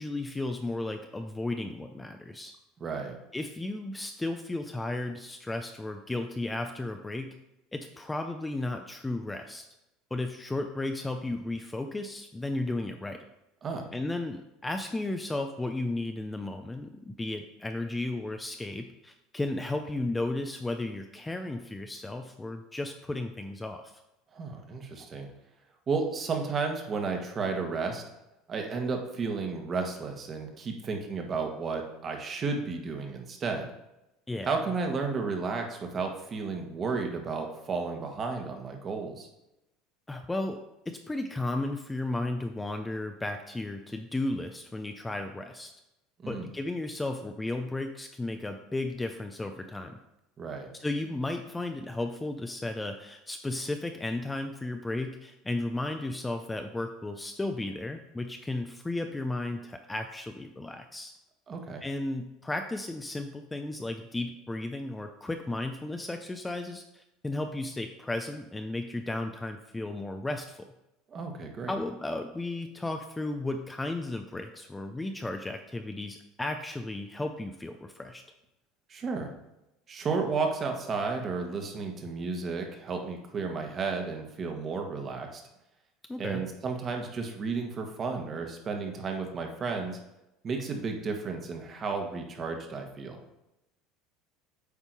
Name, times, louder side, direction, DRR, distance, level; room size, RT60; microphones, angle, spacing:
voice 1, 0.0-2.5 3.3-7.4 7.7-9.6 10.1-13.2 13.9-23.9 34.3-34.6 40.1-40.6 40.9-45.7 46.3-50.0 50.8-61.1 61.8-70.6 71.7-78.2 86.1-86.4, left 2 dB, 10° left, 6 dB, 0.5 m, -34 dB
voice 2, 2.8-3.2 13.6-13.9 24.3-25.3 25.9-28.0 28.5-33.7 34.4-39.3 46.2-46.5 50.4-50.7 61.5-61.8 71.1-71.7 78.9-79.3 79.9-85.4 86.2-90.0 90.4-93.2, right 4 dB, 35° right, 3 dB, 1.3 m, -33 dB
8.3 x 3.7 x 4.7 m, 0.90 s
supercardioid pair, 115°, 0 cm